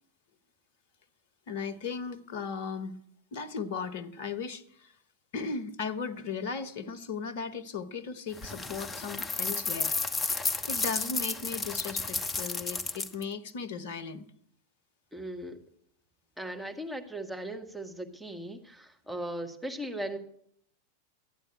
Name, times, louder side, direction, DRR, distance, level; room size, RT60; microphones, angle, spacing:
voice 1, 1.5-2.9 3.3-4.9 5.3-9.9 10.7-14.3, left 5 dB, 55° left, 1.0 m, -36 dB
sound 1, 8.4-13.2, left 3 dB, 15° left, 1.0 m, -32 dB
voice 2, 15.1-15.6 16.4-20.2, right 1 dB, ahead, 1.5 m, -38 dB
13.0 x 9.1 x 8.8 m
figure-of-eight pair, 90°, 0 cm